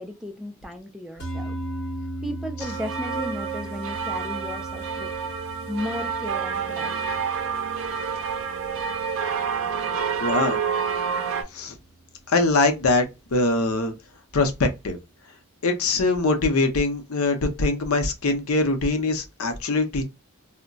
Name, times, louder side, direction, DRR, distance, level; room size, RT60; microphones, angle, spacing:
voice 1, 0.0-1.6 2.2-5.1 5.7-7.0, left 1 dB, ahead, 0.3 m, -34 dB
sound 1, 1.2-11.6, right 1 dB, 50° left, 1.0 m, -38 dB
sound 2, 2.6-11.4, right 6 dB, 65° right, 0.5 m, -28 dB
voice 2, 10.2-10.6 11.5-11.7 12.3-13.9 14.3-15.0 15.6-20.0, left 2 dB, 80° left, 0.6 m, -22 dB
2.2 x 2.1 x 3.8 m
head